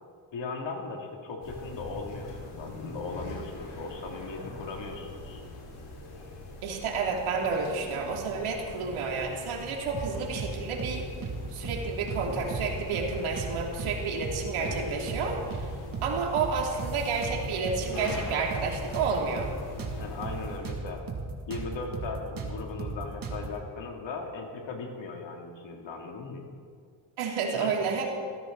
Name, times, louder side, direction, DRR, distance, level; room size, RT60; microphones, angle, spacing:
voice 1, 0.3-5.4 20.0-21.0 21.5-26.5 27.5-27.7, left 4 dB, 60° left, 1 dB, 3.1 m, -38 dB
sound 1, 1.4-20.6, left 2 dB, 75° left, 5.3 m, -42 dB
voice 2, 6.6-11.1 11.5-15.7 16.0-19.5 27.2-28.1, right 4 dB, 80° right, 0 dB, 3.1 m, -30 dB
sound 2, 9.9-10.5 10.8-11.0 11.2-12.2 12.5-12.7 12.9-14.0 14.2-14.4 14.6-15.7 15.9-16.1 16.4-17.8 18.1-20.8 21.1-21.2 21.5-23.5, right 4 dB, 40° right, 2.7 m, -35 dB
20.5 x 15.5 x 4.1 m, 2.1 s
cardioid pair, 90°, 49 cm